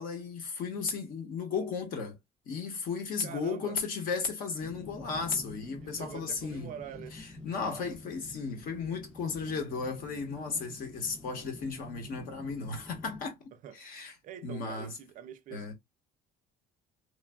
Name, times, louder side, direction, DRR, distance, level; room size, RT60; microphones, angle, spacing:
voice 1, 0.0-2.2 2.5-6.7 7.1-13.4 13.7-14.1 14.4-14.9 15.5-15.7, left 5 dB, 55° left, 1.1 m, -35 dB
voice 2, 3.2-3.8 5.8-7.2 13.6-13.9 14.2-15.7, right 9 dB, 50° right, 0.5 m, -45 dB
sound 1, 4.6-13.2, left 2 dB, 5° left, 0.4 m, -48 dB
3.2 x 2.2 x 2.2 m
cardioid pair, 165°, 17 cm